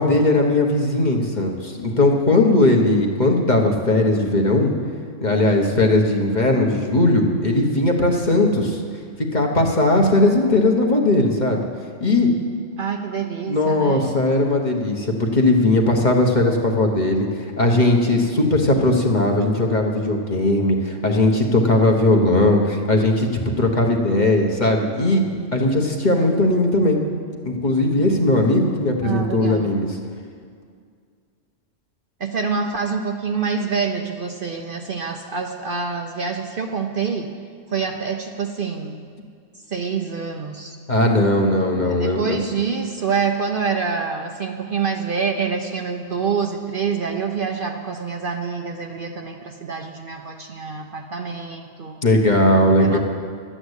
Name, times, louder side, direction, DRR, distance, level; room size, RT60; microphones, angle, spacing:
voice 1, 0.0-4.7 5.2-8.8 9.3-11.6 12.0-12.3 13.5-23.3 23.6-27.0 27.4-30.0 40.9-42.4 52.0-53.0, left 2 dB, 35° left, 1 dB, 1.3 m, -18 dB
voice 2, 12.8-14.3 29.0-29.7 32.2-37.3 37.7-39.1 39.7-40.8 41.8-52.0 52.8-53.0, right 5 dB, 50° right, 3 dB, 0.8 m, -26 dB
11.5 x 8.9 x 8.1 m, 2.1 s
omnidirectional pair, 1.3 m